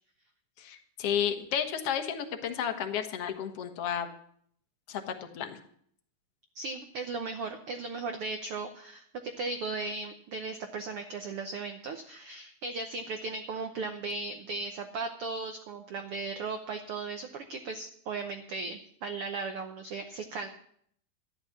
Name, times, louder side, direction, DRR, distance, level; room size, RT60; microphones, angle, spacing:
voice 1, 0.6-4.1 4.9-5.6, left 8 dB, 55° left, 5 dB, 1.9 m, -32 dB
voice 2, 6.5-20.5, right 3 dB, 90° right, 6 dB, 1.2 m, -37 dB
13.0 x 11.0 x 5.8 m, 0.63 s
omnidirectional pair, 3.9 m